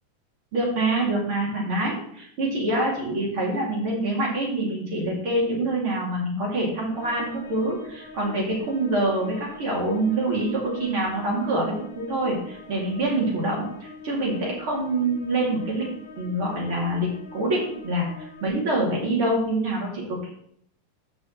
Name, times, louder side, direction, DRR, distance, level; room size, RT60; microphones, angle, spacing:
voice 1, 0.5-15.9 16.2-20.3, right 1 dB, 40° right, -4 dB, 3.1 m, -26 dB
sound 1, 6.9-18.5, left 2 dB, 45° left, 2.2 m, -44 dB
14.0 x 5.4 x 3.1 m, 0.69 s
omnidirectional pair, 3.9 m